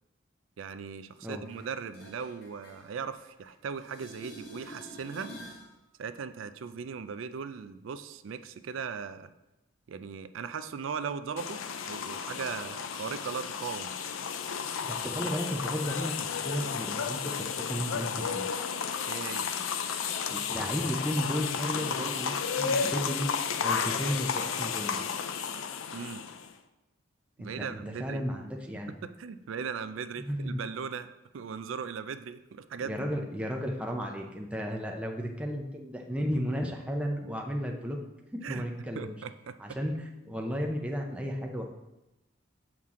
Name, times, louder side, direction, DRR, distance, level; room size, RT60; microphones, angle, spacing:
voice 1, 0.6-5.3 6.0-9.3 9.9-13.9 19.1-19.5 25.9-26.2 27.4-28.2 28.9-33.0 38.4-38.6 39.0-39.6, right 6 dB, 75° right, 11 dB, 0.4 m, -38 dB
sound 1, 1.5-3.5 3.8-5.7 11.4-11.5, equal, 50° left, 1.4 m, -48 dB
sound 2, 11.4-26.5, left 6 dB, 85° left, 0.5 m, -33 dB
voice 2, 14.8-18.5 20.3-23.3 23.6-25.0 27.4-28.9 30.2-30.6 32.9-38.0 38.3-39.1 39.6-41.6, equal, 5° right, 1 dB, 0.5 m, -34 dB
7.3 x 5.9 x 3.7 m, 0.97 s
head